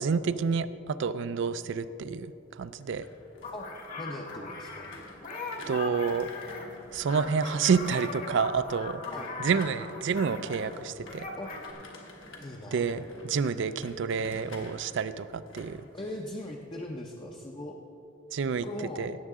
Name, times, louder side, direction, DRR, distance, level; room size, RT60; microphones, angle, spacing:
voice 1, 0.0-2.3 2.6-3.0 5.7-6.3 6.9-9.0 9.4-11.3 12.7-15.8 18.3-18.7 19.0-19.1, right 5 dB, 60° right, 14 dB, 0.4 m, -29 dB
sound 1, 2.6-16.6 17.0-17.3, left 2 dB, 70° left, 1.4 m, -50 dB
sound 2, 3.4-10.7 11.0-11.7, left 3 dB, 40° left, 1.2 m, -39 dB
voice 2, 4.0-4.9 9.1-9.4 11.4-11.5 12.4-12.9 15.9-17.8 18.5-19.1, left 1 dB, 25° left, 0 dB, 0.6 m, -39 dB
17.0 x 7.3 x 3.6 m, 2.9 s
head